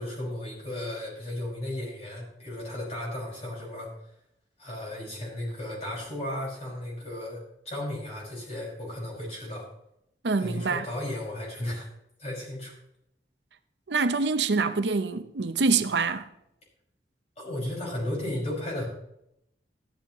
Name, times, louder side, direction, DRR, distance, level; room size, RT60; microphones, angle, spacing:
voice 1, 0.0-3.9 4.6-9.7 10.4-11.9 12.2-12.7 17.4-18.9, left 1 dB, 35° left, 5.7 m, -34 dB
voice 2, 10.2-10.9 13.9-16.3, right 4 dB, 80° right, 0.7 m, -25 dB
14.0 x 12.0 x 3.1 m
head